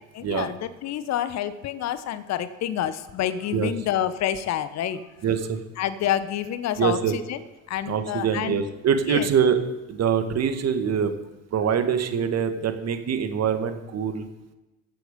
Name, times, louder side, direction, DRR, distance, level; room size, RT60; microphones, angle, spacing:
voice 1, 0.0-5.0 5.8-7.0 7.3-7.4 7.7-8.6 9.1-9.3, left 11 dB, 40° left, 13 dB, 1.1 m, -28 dB
voice 2, 5.2-5.6 6.8-7.1 7.9-9.6 9.9-11.2 11.5-14.3, right 7 dB, 40° right, 8 dB, 1.9 m, -24 dB
15.0 x 8.3 x 5.4 m, 1.0 s
figure-of-eight pair, 55°, 41 cm